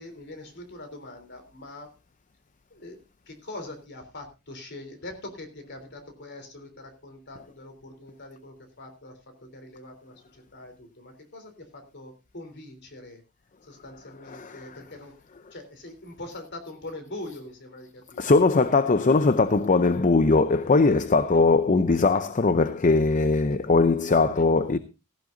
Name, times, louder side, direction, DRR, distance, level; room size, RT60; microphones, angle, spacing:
voice 1, 0.0-1.9 2.7-3.0 3.3-13.2 13.6-15.2 15.5-18.6, left 2 dB, 55° left, 3.5 m, -43 dB
voice 2, 18.2-24.8, left 3 dB, 35° left, 0.6 m, -20 dB
16.0 x 14.5 x 2.6 m
head